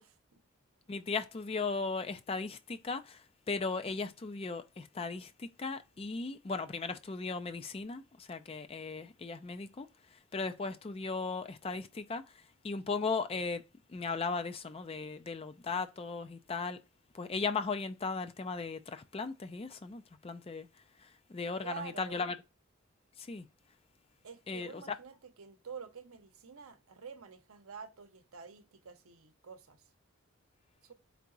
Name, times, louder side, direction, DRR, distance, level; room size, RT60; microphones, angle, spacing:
voice 1, 0.9-9.9 10.1-12.2 12.6-13.6 13.9-16.8 17.1-20.7 21.0-22.4 23.2-23.5 24.5-25.0, left 4 dB, 25° left, 0.3 m, -37 dB
voice 2, 21.6-22.2 24.2-29.9 30.8-30.9, right 6 dB, 70° right, 0.7 m, -48 dB
4.6 x 2.8 x 3.8 m
head